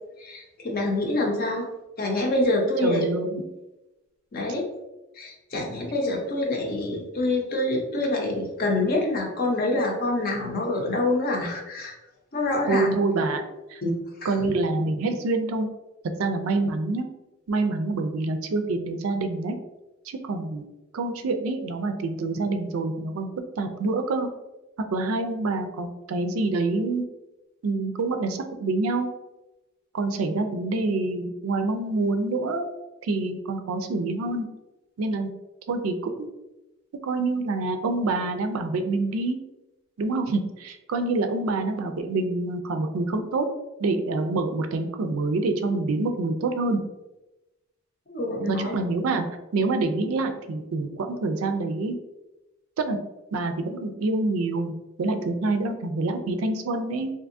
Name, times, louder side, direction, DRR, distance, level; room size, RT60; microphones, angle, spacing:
voice 1, 0.2-1.7 2.0-3.0 4.3-4.7 5.2-11.9 12.3-12.9 13.8-13.9 14.2-14.3 48.1-48.7, left 2 dB, 45° left, 0 dB, 0.7 m, -26 dB
voice 2, 2.8-3.4 12.7-13.4 13.7-13.8 14.2-15.7 16.2-17.1 17.5-19.6 20.1-20.6 20.9-23.3 23.6-24.3 24.9-27.0 27.6-29.1 29.9-32.7 33.0-34.5 35.0-35.3 35.7-36.3 37.0-39.4 40.0-43.5 43.8-46.8 48.5-49.3 49.5-52.0 52.8-53.0 53.3-57.1, right 3 dB, 85° right, 7 dB, 0.4 m, -26 dB
3.4 x 2.7 x 2.5 m, 1.0 s
head